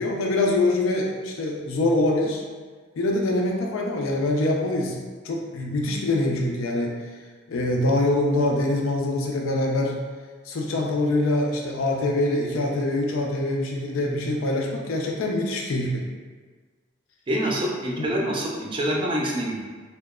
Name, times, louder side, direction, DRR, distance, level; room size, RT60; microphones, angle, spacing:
voice 1, 0.0-2.4 3.0-5.0 5.2-6.9 7.5-10.0 10.5-16.0 18.0-18.1, left 2 dB, 85° left, 0 dB, 0.4 m, -24 dB
voice 2, 17.3-19.6, right 1 dB, 25° right, -2 dB, 0.3 m, -26 dB
2.7 x 2.1 x 2.2 m, 1.5 s
head